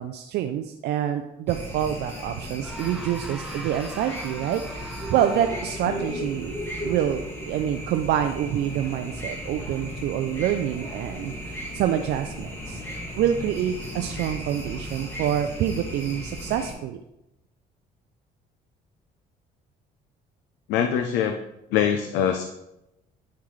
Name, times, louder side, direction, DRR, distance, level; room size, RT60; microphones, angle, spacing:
voice 1, 0.0-6.6 6.8-12.8 13.2-17.0, right 10 dB, 75° right, 6 dB, 0.5 m, -27 dB
sound 1, 1.5-16.7, equal, 15° left, 2.1 m, -35 dB
sound 2, 2.6-6.0, right 1 dB, 5° right, 0.9 m, -41 dB
voice 2, 5.9-6.2 20.7-21.4 21.7-22.4, left 8 dB, 90° left, 6 dB, 0.6 m, -24 dB
8.6 x 5.8 x 3.2 m, 0.89 s
cardioid pair, 110°, 17 cm